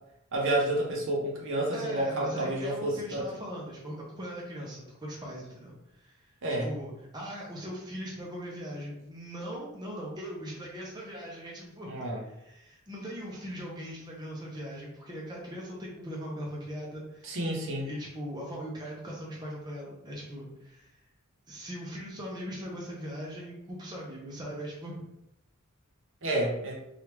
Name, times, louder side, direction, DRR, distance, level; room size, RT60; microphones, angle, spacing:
voice 1, 0.3-3.2 6.4-6.7 11.9-12.2 17.2-17.9 26.2-26.8, right 1 dB, 60° right, -2 dB, 0.8 m, -29 dB
voice 2, 1.7-6.3 6.6-11.9 12.2-17.4 17.8-21.0 21.5-25.0, equal, 20° right, -4 dB, 0.6 m, -40 dB
3.3 x 2.4 x 2.9 m, 0.86 s
head